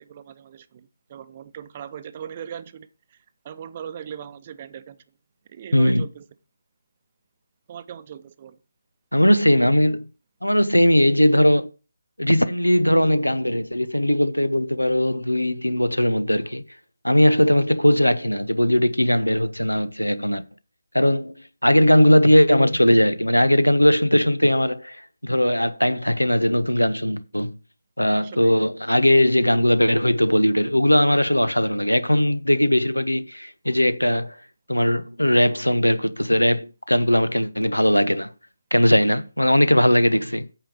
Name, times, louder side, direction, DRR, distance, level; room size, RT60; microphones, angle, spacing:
voice 1, 0.0-3.2 3.4-5.0 5.5-6.2 7.7-8.6 28.1-28.6, right 8 dB, 30° right, 0.7 m, -39 dB
voice 2, 5.7-6.0 9.1-10.0 10.4-11.7 12.2-16.6 17.0-20.4 20.9-21.3 21.6-27.6 28.0-34.3 34.7-38.3 38.7-40.5, left 1 dB, 90° left, 0.9 m, -19 dB
8.9 x 6.7 x 4.9 m
figure-of-eight pair, 150°, 0 cm